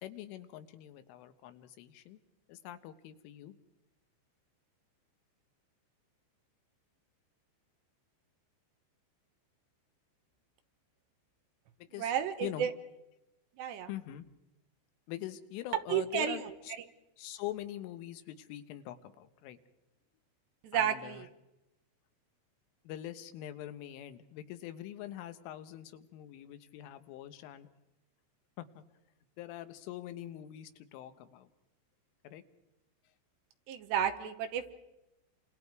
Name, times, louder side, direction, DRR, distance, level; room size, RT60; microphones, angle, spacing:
voice 1, 0.0-2.2 2.5-3.5 11.9-12.1 12.4-12.7 13.9-14.3 15.1-16.7 17.2-19.6 20.7-21.3 22.9-27.7 28.6-28.8 29.4-31.5 32.2-32.4, left 13 dB, 90° left, 10 dB, 3.6 m, -44 dB
voice 2, 12.0-12.7 13.6-13.9 15.9-16.4 20.6-21.3 33.7-34.7, right 9 dB, 70° right, 8 dB, 3.1 m, -32 dB
29.0 x 26.0 x 4.7 m, 0.94 s
omnidirectional pair, 5.5 m